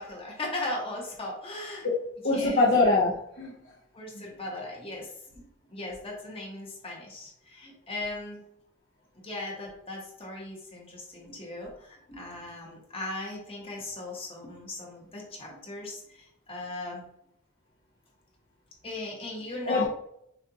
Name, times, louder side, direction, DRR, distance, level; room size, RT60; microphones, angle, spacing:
voice 1, 0.0-1.9 2.3-2.7 3.9-8.4 9.2-17.0 18.8-19.9, left 2 dB, 25° left, -2 dB, 1.1 m, -38 dB
voice 2, 1.8-3.6 4.1-4.2 19.6-19.9, left 3 dB, 50° left, -7 dB, 0.8 m, -24 dB
6.5 x 2.5 x 2.8 m, 0.75 s
head